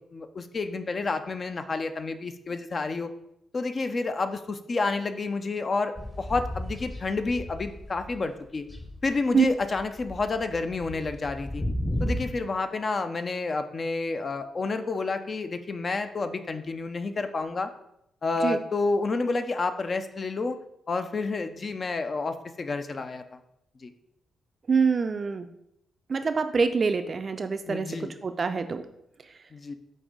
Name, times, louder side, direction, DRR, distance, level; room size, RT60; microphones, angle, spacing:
voice 1, 0.0-3.1 3.5-8.6 9.0-11.6 12.0-17.7 18.2-20.6 20.9-23.4 23.8-23.9 27.7-28.1 29.5-29.7, left 3 dB, 45° left, 8 dB, 0.4 m, -29 dB
sound 1, 5.9-8.3 8.5-12.3, equal, 20° left, 0.8 m, -34 dB
voice 2, 24.7-25.5 26.1-28.9, right 5 dB, 45° right, 9 dB, 0.4 m, -25 dB
5.3 x 2.6 x 3.6 m, 0.78 s
supercardioid pair, 55°, 0 cm